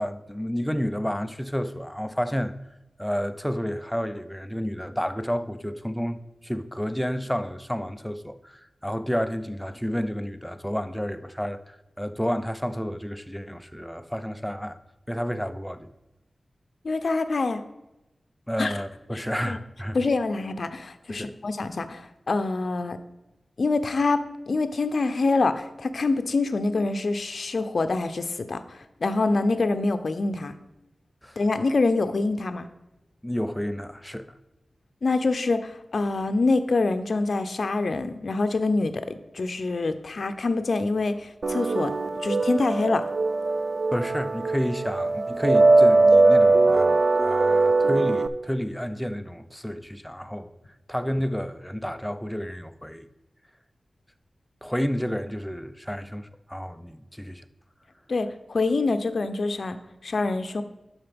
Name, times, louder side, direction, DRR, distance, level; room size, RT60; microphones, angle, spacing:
voice 1, 0.0-2.5 3.0-14.8 15.1-15.9 18.5-20.0 21.1-21.4 31.2-31.4 33.2-34.3 43.9-50.5 50.9-53.1 54.6-57.4, equal, 5° left, 0.5 m, -30 dB
voice 2, 16.8-17.6 18.6-18.7 19.1-19.6 19.9-23.0 23.6-30.5 31.4-32.7 35.0-41.9 42.2-43.1 58.1-60.6, left 3 dB, 65° left, 0.6 m, -25 dB
sound 1, 41.4-48.3, right 3 dB, 55° right, 0.4 m, -20 dB
11.5 x 4.3 x 5.2 m
wide cardioid pair, 105°, 0 cm